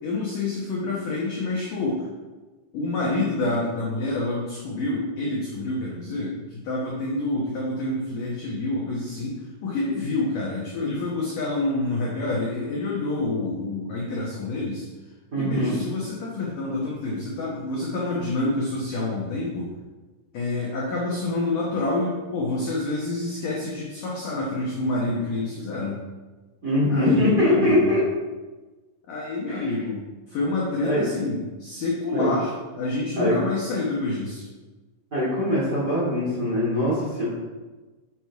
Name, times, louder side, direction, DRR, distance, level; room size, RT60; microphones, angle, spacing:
voice 1, 0.0-2.1 2.7-14.8 15.4-19.7 20.3-26.0 26.9-27.9 29.1-30.0 30.3-34.5, left 2 dB, 80° left, -4 dB, 1.9 m, -27 dB
voice 2, 15.3-15.8 26.6-28.0 29.5-29.7 30.8-31.0 32.1-32.3 33.2-33.3 35.1-37.2, left 1 dB, 35° right, -8 dB, 1.7 m, -22 dB
8.8 x 6.1 x 4.8 m, 1.2 s
omnidirectional pair, 5.8 m